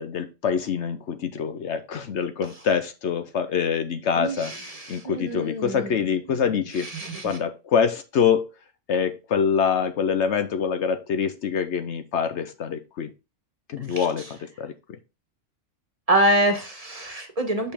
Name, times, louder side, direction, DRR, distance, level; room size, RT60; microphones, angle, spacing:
voice 1, 0.0-4.5 4.9-6.9 7.2-8.5 8.9-13.1 13.7-15.0, left 7 dB, 65° left, 9 dB, 1.0 m, -25 dB
voice 2, 4.1-6.0 6.3-6.4 6.8-7.4 13.9-14.1 16.1-17.7, right 1 dB, 30° right, 5 dB, 1.3 m, -25 dB
6.6 x 5.3 x 3.5 m, 0.27 s
omnidirectional pair, 1.3 m